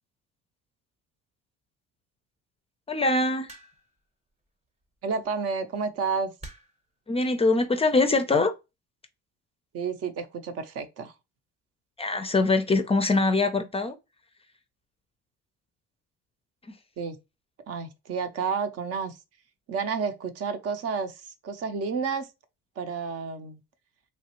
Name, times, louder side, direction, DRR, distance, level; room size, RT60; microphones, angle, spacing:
voice 1, 2.9-3.5 7.1-8.5 12.0-14.0 16.7-16.8, left 3 dB, 20° left, 0.4 m, -23 dB
sound 1, 3.5-4.0 5.2-5.5 6.4-6.9 7.8-8.2, right 1 dB, 20° right, 0.8 m, -46 dB
voice 2, 5.0-6.3 9.7-11.1 17.0-17.2 17.7-19.2 19.7-22.3 22.8-23.6, right 5 dB, 55° right, 0.6 m, -30 dB
3.1 x 2.3 x 2.8 m
supercardioid pair, 85°, 30 cm